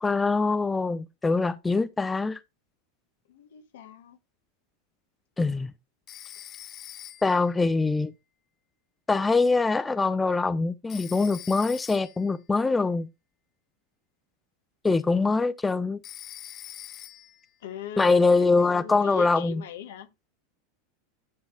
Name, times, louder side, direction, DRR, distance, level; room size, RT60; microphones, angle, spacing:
voice 1, 0.0-2.4 5.4-5.7 7.2-8.1 9.1-13.1 14.8-16.0 18.0-19.6, left 3 dB, 15° left, 0.5 m, -23 dB
voice 2, 3.3-4.2 17.6-20.1, left 10 dB, 75° left, 1.4 m, -40 dB
Telephone, 6.1-7.5 10.9-12.3 16.0-17.4, left 12 dB, 45° left, 0.8 m, -44 dB
10.5 x 3.6 x 4.4 m
hypercardioid pair, 100°, 0 cm